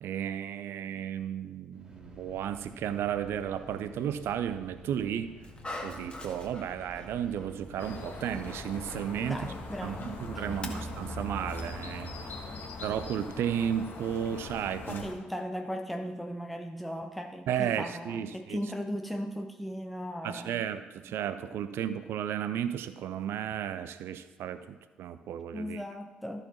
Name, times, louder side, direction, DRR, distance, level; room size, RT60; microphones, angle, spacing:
voice 1, 0.0-5.4 5.8-9.5 9.8-12.1 12.8-15.1 17.5-18.6 20.2-25.8, right 9 dB, 60° right, 12 dB, 0.5 m, -33 dB
sound 1, 1.7-11.5, equal, 15° right, 2.2 m, -51 dB
Dog, 5.4-11.8, left 1 dB, 25° left, 1.6 m, -46 dB
sound 2, 7.8-15.1, left 2 dB, 50° left, 1.4 m, -41 dB
voice 2, 9.2-10.9 12.5-12.7 14.9-20.6 25.5-26.4, equal, ahead, 5 dB, 0.7 m, -37 dB
13.5 x 4.9 x 4.4 m, 1.2 s
figure-of-eight pair, 45°, 5 cm